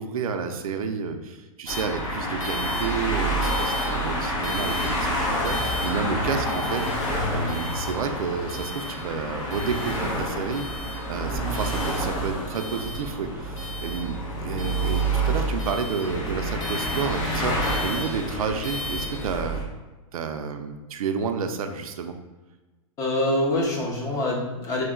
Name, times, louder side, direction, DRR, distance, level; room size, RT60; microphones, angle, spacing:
voice 1, 0.0-10.7 11.1-19.6 20.1-22.2, right 5 dB, 85° right, 6 dB, 0.4 m, -30 dB
sound 1, 1.7-19.6, right 1 dB, 65° left, 1.0 m, -28 dB
voice 2, 23.0-24.8, left 1 dB, 20° left, -2 dB, 0.5 m, -25 dB
3.1 x 2.2 x 3.6 m, 1.2 s
hypercardioid pair, 150°, 18 cm